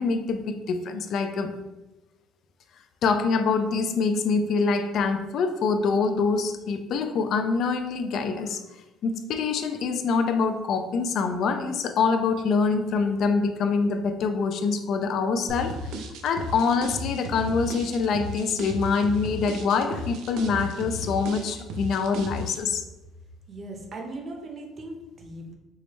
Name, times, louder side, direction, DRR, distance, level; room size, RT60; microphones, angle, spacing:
voice 1, 0.0-1.5 3.0-8.6 9.0-15.9 16.2-22.8, left 4 dB, 55° left, 8 dB, 0.3 m, -25 dB
sound 1, 15.5-22.6, equal, 85° right, 0.5 m, -35 dB
voice 2, 23.5-25.5, right 2 dB, 35° right, 1 dB, 0.7 m, -38 dB
4.6 x 2.0 x 3.0 m, 1.1 s
cardioid pair, 120°, 0 cm